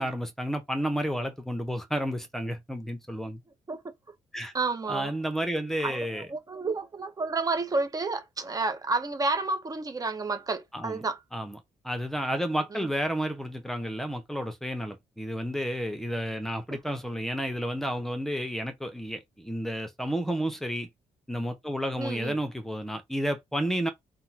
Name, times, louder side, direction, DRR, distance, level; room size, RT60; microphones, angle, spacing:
voice 1, 0.0-3.4 4.3-4.5 4.9-6.3 10.7-11.0 11.3-11.6 11.8-20.9 21.3-23.9, equal, 5° left, 0.9 m, -31 dB
voice 2, 4.5-5.1 5.8-11.2 12.7-12.9 22.0-22.4, right 3 dB, 30° right, 0.9 m, -30 dB
3.6 x 2.3 x 2.9 m
cardioid pair, 90°, 13 cm